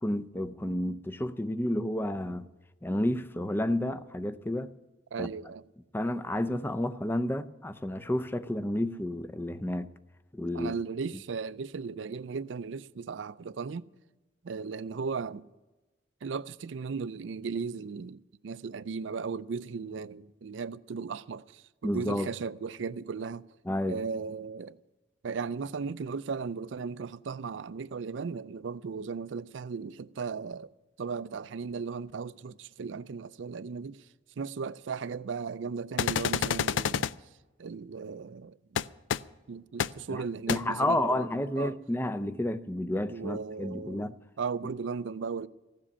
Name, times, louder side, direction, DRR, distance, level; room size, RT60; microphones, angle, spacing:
voice 1, 0.0-2.5 2.8-4.7 5.2-5.3 5.9-9.9 10.3-10.8 21.8-22.3 23.7-24.0 40.1-44.2, left 1 dB, 10° left, 0.5 m, -31 dB
voice 2, 5.1-5.6 10.5-13.9 14.4-15.5 16.2-23.4 23.9-24.8 25.2-30.7 31.0-34.1 34.4-37.3 37.6-38.8 39.5-41.3 41.6-41.7 43.1-44.1 44.4-45.5, right 5 dB, 85° right, 0.4 m, -36 dB
sound 1, 36.0-37.1 38.8-38.9 39.1-39.2 39.8-39.9 40.5-40.6, left 8 dB, 80° left, 0.4 m, -28 dB
15.0 x 7.6 x 9.9 m
head